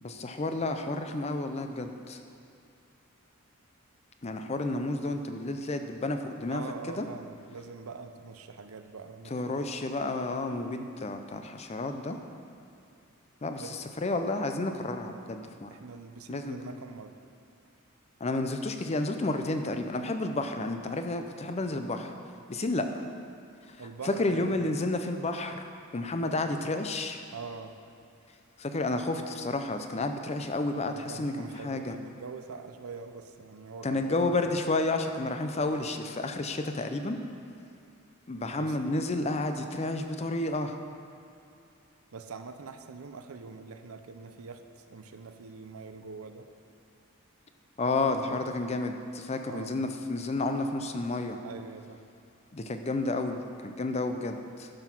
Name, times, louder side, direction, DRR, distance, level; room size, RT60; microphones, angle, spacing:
voice 1, 0.0-2.2 4.2-6.6 6.9-7.1 9.3-12.2 13.4-13.6 14.0-15.7 16.3-16.6 18.2-22.1 22.5-23.0 24.0-25.6 25.9-27.2 28.6-32.0 33.8-37.2 38.3-40.7 47.8-51.4 52.5-54.7, left 2 dB, 30° left, 7 dB, 0.5 m, -31 dB
voice 2, 6.5-9.6 13.6-13.8 15.7-17.2 23.8-24.7 27.3-27.8 30.8-34.6 38.6-38.8 42.1-46.5 48.1-48.5 49.5-49.8 51.4-52.0, right 4 dB, 90° right, 8 dB, 0.6 m, -44 dB
11.5 x 5.9 x 6.0 m, 2.5 s
head